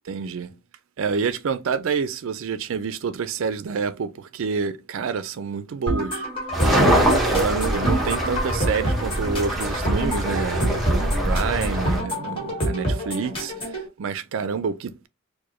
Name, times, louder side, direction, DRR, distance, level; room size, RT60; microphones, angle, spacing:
voice 1, 0.1-0.5 1.0-6.3 7.3-15.1, right 5 dB, 65° right, 0.4 m, -28 dB
sound 1, 5.9-13.9, right 1 dB, 25° left, 1.5 m, -27 dB
sound 2, 6.5-12.0, right 1 dB, ahead, 0.9 m, -23 dB
4.7 x 2.1 x 3.0 m
head